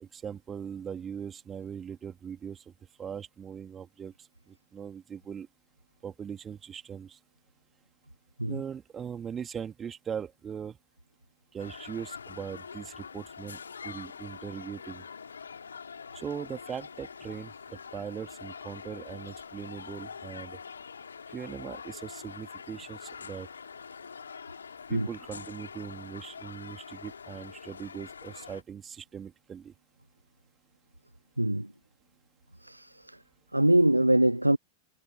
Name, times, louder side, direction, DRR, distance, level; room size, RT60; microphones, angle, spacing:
voice 1, 0.0-2.6 3.0-4.1 4.7-5.5 6.0-7.2 8.4-10.8 11.5-15.0 16.1-20.6 21.3-23.5 24.9-29.7, right 7 dB, 20° right, 3.0 m, -40 dB
sound 1, 11.6-28.6, left 6 dB, 70° left, 3.9 m, -45 dB
voice 2, 31.4-31.7 32.6-32.9 33.5-34.6, right 1 dB, 85° right, 1.0 m, -23 dB
figure-of-eight pair, 90°, 0 cm